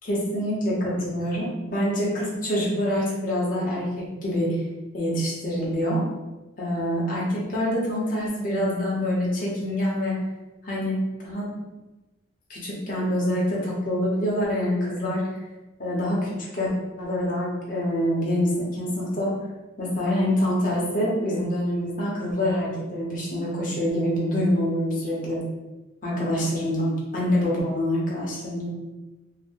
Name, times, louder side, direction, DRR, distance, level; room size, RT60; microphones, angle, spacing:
voice 1, 0.0-4.6 4.9-6.0 6.6-10.2 10.6-11.5 12.5-15.2 15.8-16.7 17.0-19.3 19.8-25.4 26.0-28.7, equal, 45° left, -5 dB, 0.8 m, -26 dB
2.6 x 2.1 x 3.5 m, 1.1 s
head